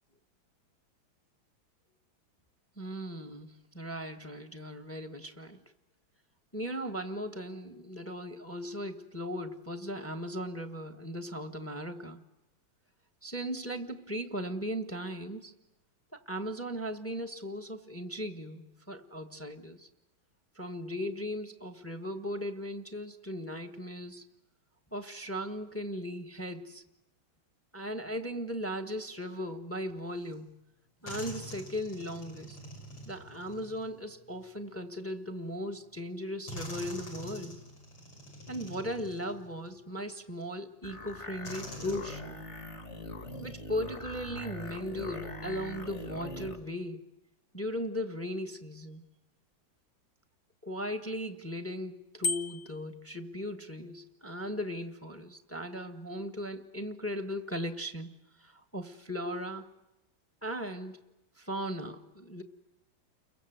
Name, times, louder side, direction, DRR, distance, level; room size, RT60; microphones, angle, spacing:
voice 1, 2.8-5.6 6.5-12.2 13.2-15.5 16.1-19.9 20.5-24.2 24.9-26.8 27.7-30.6 31.0-32.6 33.0-37.6 38.5-42.4 43.4-47.1 47.5-49.1 50.6-58.1 58.4-59.7 60.4-61.0 61.4-62.4, equal, 10° left, 8 dB, 1.1 m, -37 dB
sound 1, 30.3-30.4 31.0-34.7 35.6-35.7 36.5-39.8 40.4-40.5 41.4-42.0, equal, 85° left, 6.6 m, -45 dB
sound 2, 40.8-46.6, left 1 dB, 35° left, 2.1 m, -42 dB
Bicycle bell, 52.2-52.9, left 4 dB, 55° left, 1.7 m, -32 dB
30.0 x 22.0 x 8.0 m, 0.95 s
omnidirectional pair, 2.2 m